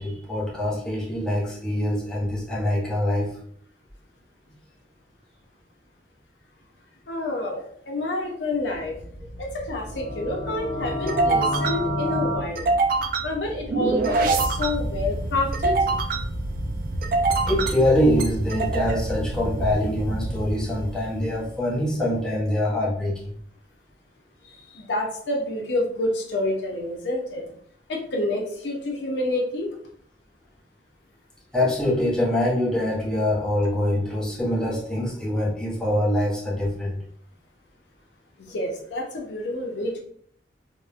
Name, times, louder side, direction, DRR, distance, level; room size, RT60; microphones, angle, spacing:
voice 1, 0.0-3.3 17.5-23.3 31.5-37.0, left 1 dB, 5° left, -5 dB, 0.6 m, -24 dB
voice 2, 7.1-8.9 9.4-12.7 13.2-15.8 24.4-27.4 27.9-29.7 38.5-40.0, left 2 dB, 75° left, 1 dB, 0.5 m, -28 dB
sound 1, 8.7-21.5, right 3 dB, 50° right, 0.3 m, -26 dB
sound 2, 9.8-12.4, left 1 dB, 40° left, 1.1 m, -28 dB
2.9 x 2.0 x 2.3 m, 0.62 s
head